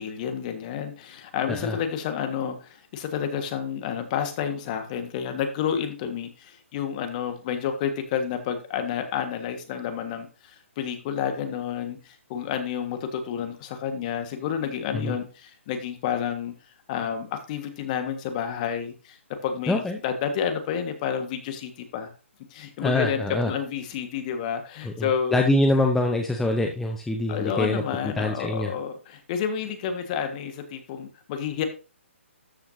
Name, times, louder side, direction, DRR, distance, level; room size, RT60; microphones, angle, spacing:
voice 1, 0.0-16.5 16.9-19.2 19.4-22.1 22.5-25.4 27.3-31.6, left 8 dB, 35° left, 8 dB, 1.5 m, -30 dB
voice 2, 19.7-20.0 22.8-23.5 24.8-28.7, left 2 dB, 5° left, 3 dB, 0.7 m, -25 dB
13.0 x 5.9 x 2.7 m, 0.33 s
figure-of-eight pair, 140°, 7 cm